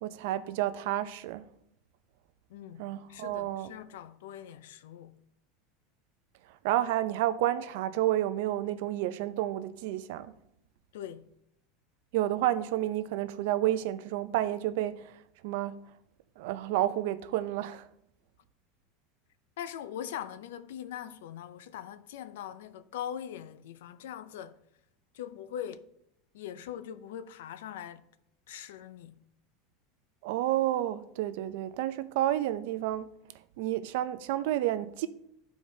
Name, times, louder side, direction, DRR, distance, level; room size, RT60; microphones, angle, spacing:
voice 1, 0.0-1.4 2.8-3.7 6.6-10.3 12.1-15.0 15.4-15.8 16.4-17.9 30.2-33.1 33.6-35.1, right 13 dB, 70° right, 0.4 m, -30 dB
voice 2, 2.5-5.2 10.9-11.3 19.6-24.6 25.1-25.9 26.3-28.1 28.5-29.2, left 10 dB, 90° left, 0.5 m, -41 dB
12.5 x 4.5 x 2.7 m
supercardioid pair, 150°, 0 cm